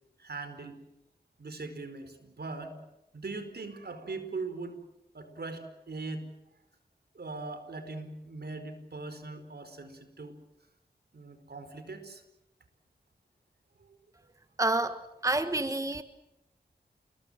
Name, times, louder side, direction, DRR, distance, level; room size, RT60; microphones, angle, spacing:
voice 1, 0.2-0.8 1.4-2.8 3.1-4.8 5.1-6.3 7.1-10.4 11.1-12.2 13.8-13.9, right 3 dB, 65° right, 4.8 m, -40 dB
voice 2, 14.6-16.0, right 2 dB, 20° right, 1.4 m, -29 dB
29.0 x 22.0 x 7.6 m
cardioid pair, 45°, 18 cm